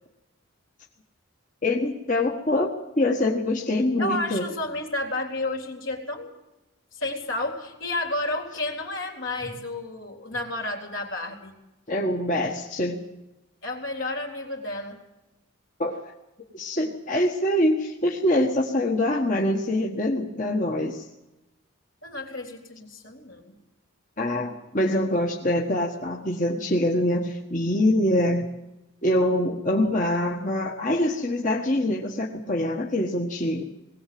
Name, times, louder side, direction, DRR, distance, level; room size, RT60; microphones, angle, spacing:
voice 1, 1.6-4.4 11.9-13.0 15.8-16.1 16.5-21.0 24.2-28.5 29.0-33.6, left 1 dB, 40° left, 0 dB, 1.6 m, -24 dB
voice 2, 4.0-6.3 6.9-11.5 13.6-15.0 22.0-23.6, left 2 dB, 70° left, 3 dB, 3.9 m, -31 dB
21.0 x 17.5 x 7.8 m, 0.98 s
head